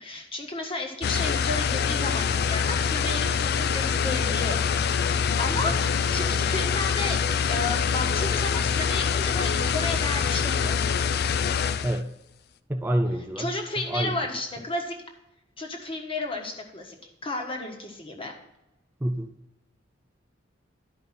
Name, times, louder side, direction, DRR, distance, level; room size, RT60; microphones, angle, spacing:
voice 1, 0.0-4.9 5.4-5.7 6.1-7.2 7.5-10.8 13.4-14.9 15.6-17.0 17.2-18.3, left 2 dB, 30° left, 1 dB, 1.3 m, -32 dB
sound 1, 1.0-12.0, left 6 dB, 55° left, 0.4 m, -25 dB
voice 2, 12.7-13.5 13.9-14.2 19.0-19.3, right 1 dB, 10° right, 3 dB, 0.4 m, -27 dB
12.0 x 5.1 x 4.2 m, 0.90 s
head